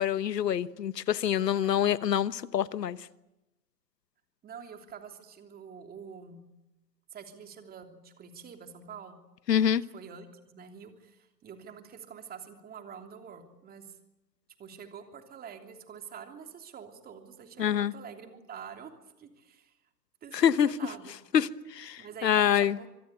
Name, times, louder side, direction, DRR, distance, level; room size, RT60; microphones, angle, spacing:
voice 1, 0.0-3.0 9.5-9.8 17.6-17.9 20.3-20.8 21.3-22.8, left 9 dB, 80° left, 16 dB, 1.3 m, -26 dB
voice 2, 1.4-1.7 4.4-6.4 7.1-9.2 9.9-13.9 14.6-18.9 19.2-19.7 20.2-21.4 22.0-22.9, right 7 dB, 20° right, 5 dB, 3.1 m, -46 dB
26.0 x 21.5 x 8.2 m, 0.95 s
hypercardioid pair, 125°, 49 cm